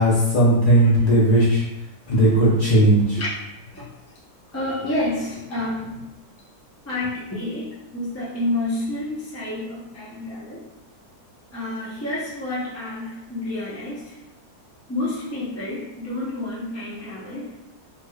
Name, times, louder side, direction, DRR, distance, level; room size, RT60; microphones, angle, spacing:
voice 1, 0.0-1.6 2.1-3.2, right 1 dB, 40° left, -8 dB, 0.8 m, -17 dB
voice 2, 2.1-2.5 3.1-3.3 3.7-3.9 4.5-6.0 6.8-10.6 11.5-14.2 14.9-17.6, left 1 dB, 20° left, -8 dB, 0.4 m, -29 dB
3.1 x 3.1 x 2.3 m, 0.96 s
omnidirectional pair, 1.7 m